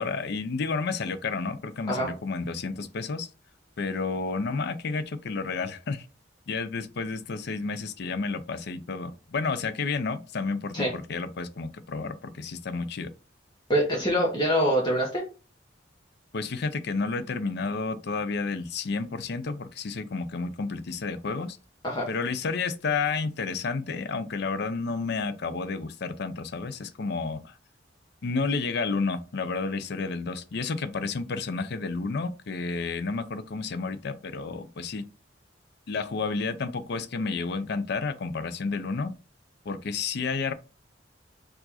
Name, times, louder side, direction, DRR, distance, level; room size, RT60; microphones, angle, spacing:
voice 1, 0.0-3.3 3.8-6.0 6.5-13.1 16.3-21.6 22.1-27.5 28.2-35.1 35.9-39.1 39.7-40.5, left 4 dB, 60° left, 0.5 m, -31 dB
voice 2, 13.7-15.2 21.8-22.1, equal, 25° left, 1.0 m, -24 dB
4.6 x 2.5 x 4.1 m
head